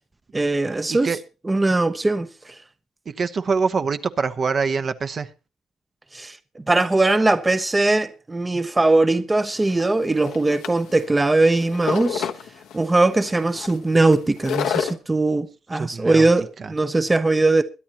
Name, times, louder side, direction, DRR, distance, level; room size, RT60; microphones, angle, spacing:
voice 1, 0.3-1.1 1.4-2.5 6.1-12.3 12.7-17.6, right 2 dB, 20° right, 0.7 m, -20 dB
voice 2, 0.9-1.2 3.1-5.3 15.7-16.3 16.6-16.7, right 5 dB, 45° right, 0.9 m, -24 dB
sound 1, 9.4-14.9, left 8 dB, 85° left, 1.1 m, -30 dB
22.0 x 10.0 x 2.9 m
cardioid pair, 90°, 0 cm